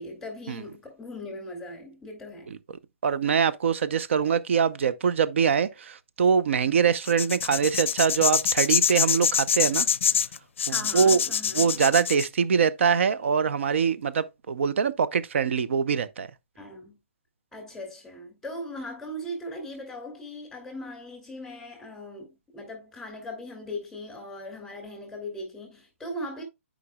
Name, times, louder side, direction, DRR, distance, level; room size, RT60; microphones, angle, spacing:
voice 1, 0.0-2.5 10.7-11.8 16.6-17.0 17.5-26.4, left 1 dB, ahead, 2.7 m, -39 dB
voice 2, 3.0-9.9 10.7-11.2 11.5-16.3, right 6 dB, 65° right, 0.6 m, -23 dB
sound 1, 7.1-12.3, left 8 dB, 65° left, 0.4 m, -25 dB
9.6 x 5.1 x 2.2 m
hypercardioid pair, 145°, 7 cm